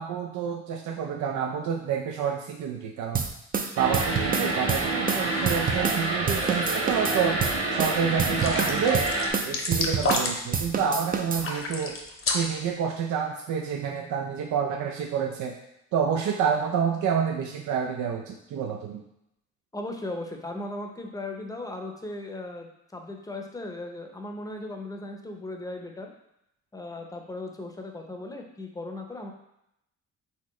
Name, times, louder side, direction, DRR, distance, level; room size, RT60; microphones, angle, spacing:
voice 1, 0.0-3.3 3.8-7.4 7.7-9.1 9.4-12.0 12.3-15.5 15.9-19.0, right 7 dB, 75° right, 1 dB, 0.5 m, -28 dB
sound 1, 3.1-6.0 6.3-10.3 10.5-11.5, right 6 dB, 30° right, 0.5 m, -28 dB
sound 2, 3.8-9.3, right 2 dB, 50° right, 1.3 m, -28 dB
sound 3, 7.0-7.5 7.8-7.9 8.3-10.6 11.3-12.7, left 3 dB, 45° left, 0.8 m, -30 dB
voice 2, 19.7-26.1 26.7-29.3, left 2 dB, 10° left, 3 dB, 0.7 m, -37 dB
4.4 x 3.7 x 3.1 m, 0.81 s
cardioid pair, 90°, 30 cm